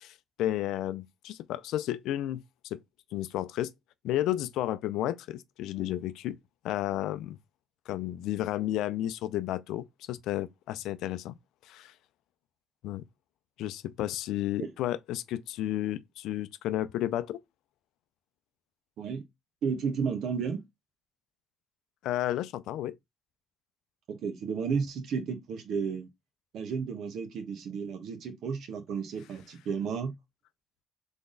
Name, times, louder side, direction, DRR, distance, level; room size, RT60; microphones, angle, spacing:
voice 1, 0.0-2.8 3.1-3.7 4.0-6.4 6.6-7.4 7.9-11.4 11.6-11.9 12.8-13.0 13.6-17.4 22.0-23.0, left 13 dB, 85° left, 0.4 m, -32 dB
voice 2, 19.6-20.6 24.1-26.1 26.5-30.1, right 6 dB, 70° right, 1.2 m, -33 dB
3.8 x 3.5 x 3.9 m
cardioid pair, 95°, 0 cm